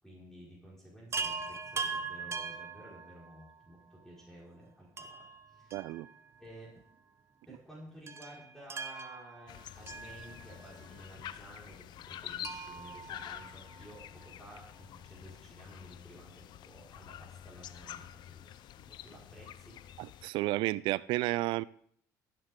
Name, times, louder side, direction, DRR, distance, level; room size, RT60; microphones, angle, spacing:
voice 1, 0.0-5.8 6.4-6.7 7.5-19.8, right 1 dB, 5° left, -5 dB, 4.9 m, -53 dB
Chime, 1.1-3.6 5.0-6.5 6.8-6.9 8.1-10.8 12.4-14.0 15.6-15.7 15.9-16.0, right 4 dB, 35° right, 1.0 m, -41 dB
voice 2, 5.7-6.1 20.0-21.6, right 18 dB, 75° right, 21 dB, 0.4 m, -32 dB
sound 1, 9.5-20.3, left 11 dB, 60° left, 0.6 m, -48 dB
15.0 x 9.8 x 3.7 m, 0.65 s
supercardioid pair, 85°, 8 cm